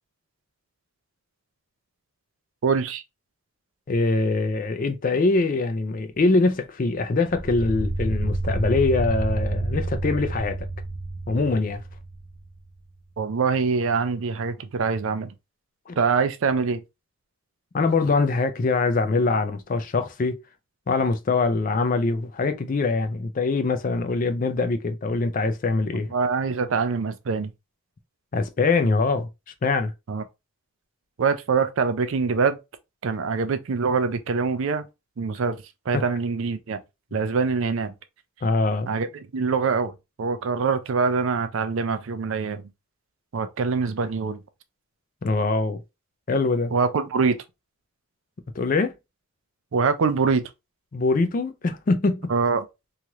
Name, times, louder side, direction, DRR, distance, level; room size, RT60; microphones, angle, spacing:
voice 1, 2.6-3.0 13.2-15.3 16.0-16.8 26.1-27.5 30.1-30.2 31.2-32.6 33.0-34.9 35.2-35.6 35.9-36.8 37.1-37.9 38.9-39.9 40.2-42.6 43.3-44.4 46.7-47.4 49.7-50.4 52.3-52.6, right 5 dB, 65° right, 0.4 m, -24 dB
voice 2, 3.9-10.7 11.3-11.8 15.9-16.0 17.7-20.4 20.9-26.1 28.3-29.3 29.6-29.9 35.9-36.0 38.4-38.9 45.2-45.8 46.3-46.7 48.6-48.9 50.9-52.3, left 3 dB, 40° left, 0.4 m, -23 dB
sound 1, 7.3-12.5, right 2 dB, 80° right, 1.2 m, -29 dB
3.1 x 2.4 x 2.8 m
head